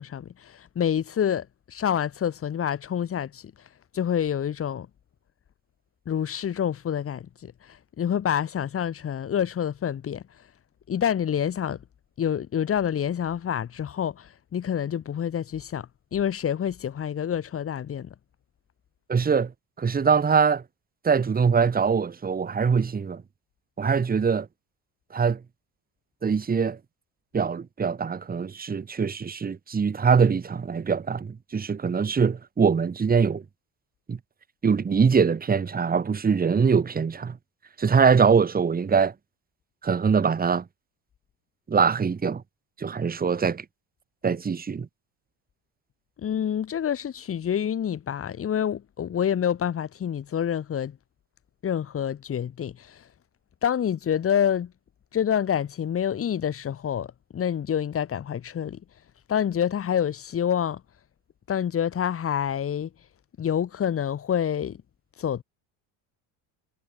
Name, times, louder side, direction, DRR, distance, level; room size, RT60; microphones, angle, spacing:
voice 1, 0.0-3.5 3.9-4.9 6.0-10.2 10.9-11.8 12.2-18.1 46.2-51.0 51.6-53.0 53.6-54.7 55.1-57.1 57.3-58.8 59.3-60.8 61.5-62.9 63.4-64.8 65.2-65.4, left 9 dB, 35° left, 1.7 m, -27 dB
voice 2, 19.1-19.5 19.8-20.6 21.0-23.2 23.8-24.5 25.1-25.4 26.2-26.8 27.3-33.4 34.1-34.2 34.6-37.4 37.8-39.1 39.8-40.7 41.7-42.4 42.8-43.7 44.2-44.9, right 6 dB, 20° right, 1.9 m, -23 dB
cardioid pair, 110°, 40 cm